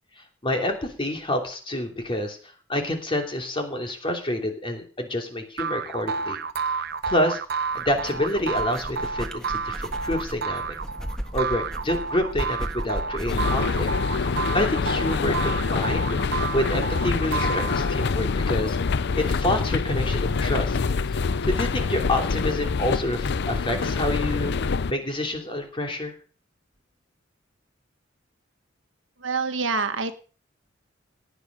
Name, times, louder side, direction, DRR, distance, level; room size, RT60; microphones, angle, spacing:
voice 1, 0.4-2.4 2.7-6.4 7.1-10.8 11.3-13.9 14.2-16.2 16.5-18.8 19.2-20.8 21.1-24.5 24.9-26.1, left 1 dB, 25° left, 3 dB, 3.1 m, -28 dB
sound 1, 5.6-18.1, right 5 dB, 55° right, 0.9 m, -30 dB
sound 2, 7.7-13.8, equal, 5° left, 1.7 m, -35 dB
sound 3, 13.3-24.9, left 4 dB, 60° left, 0.6 m, -25 dB
voice 2, 29.2-30.1, right 4 dB, 75° right, 8 dB, 1.6 m, -26 dB
18.0 x 9.8 x 5.3 m, 0.40 s
head